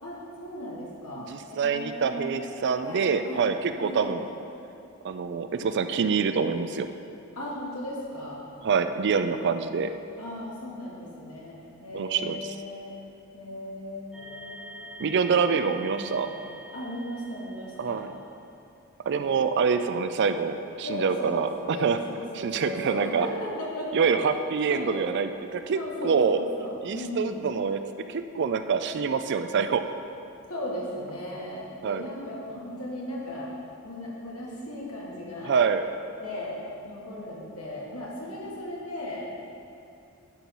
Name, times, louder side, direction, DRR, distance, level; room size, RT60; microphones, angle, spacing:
voice 1, 0.0-2.4 2.8-3.5 3.8-4.1 7.3-8.4 10.2-12.9 13.3-14.8 15.8-16.3 16.7-18.0 20.8-24.1 24.7-25.0 25.7-27.4 30.5-33.5 33.8-35.5 36.2-36.6 36.8-39.2, left 1 dB, 80° left, -5 dB, 2.1 m, -37 dB
voice 2, 1.2-4.2 5.0-6.9 8.6-9.9 11.9-12.5 15.0-16.3 17.8-18.1 19.1-22.0 22.3-23.3 23.9-26.4 26.8-27.8 28.1-29.8 31.8-32.0 35.4-35.8, right 5 dB, 55° right, 9 dB, 0.4 m, -26 dB
sound 1, 14.1-18.4, right 1 dB, 5° right, 1.5 m, -46 dB
10.5 x 4.6 x 5.4 m, 2.6 s
head